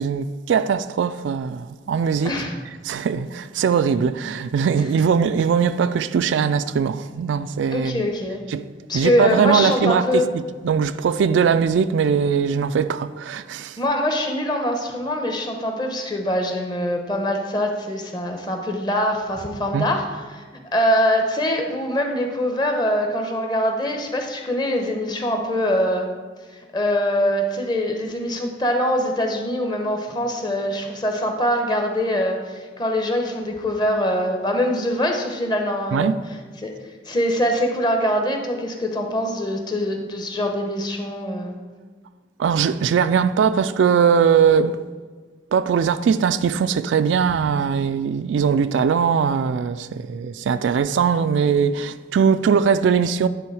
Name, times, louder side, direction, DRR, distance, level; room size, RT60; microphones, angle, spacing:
voice 1, 0.0-2.3 2.8-8.0 8.5-8.7 8.9-13.8 19.7-19.9 35.9-36.2 42.4-44.8 45.5-53.3, right 6 dB, 80° right, 0.3 m, -20 dB
voice 2, 2.2-2.6 7.7-8.4 8.9-10.2 13.8-20.4 20.7-26.1 26.7-36.1 36.6-36.7 37.1-41.5, equal, 25° left, 0.8 m, -23 dB
10.0 x 3.8 x 4.8 m
head